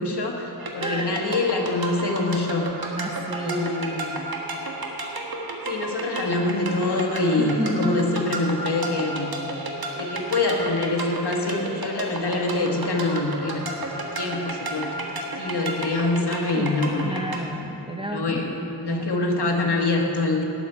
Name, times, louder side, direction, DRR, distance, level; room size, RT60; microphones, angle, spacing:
voice 1, 0.0-2.7 3.4-4.2 5.7-9.3 10.0-17.1 18.0-18.5 18.8-20.4, left 2 dB, 70° left, 1 dB, 1.5 m, -25 dB
sound 1, 0.6-17.4, right 2 dB, 60° right, 1.4 m, -32 dB
voice 2, 0.8-1.2 3.0-3.7 7.4-8.0 16.5-19.1, equal, 15° right, 2 dB, 0.8 m, -31 dB
18.0 x 7.6 x 4.5 m, 2.9 s
wide cardioid pair, 85°, 41 cm